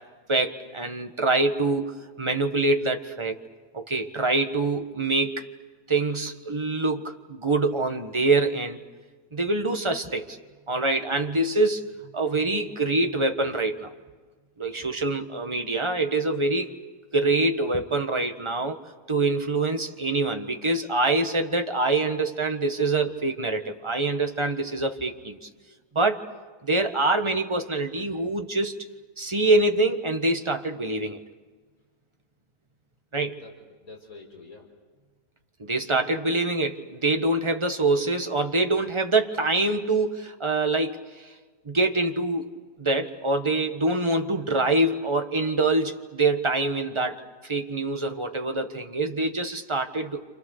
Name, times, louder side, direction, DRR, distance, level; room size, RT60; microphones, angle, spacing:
voice 1, 0.3-3.4 3.7-5.4 5.9-8.8 9.3-10.4 10.7-11.8 12.1-13.9 14.6-16.7 17.1-18.8 19.1-25.5 25.9-26.2 26.6-28.8 29.2-31.2 33.1-33.3 35.6-41.3 41.6-42.5 42.8-50.2, right 2 dB, 20° right, 5 dB, 1.3 m, -25 dB
voice 2, 33.2-34.7 35.9-36.0 36.2-36.4, left 3 dB, 60° left, 0 dB, 4.8 m, -47 dB
29.0 x 28.0 x 6.6 m, 1.4 s
omnidirectional pair, 1.7 m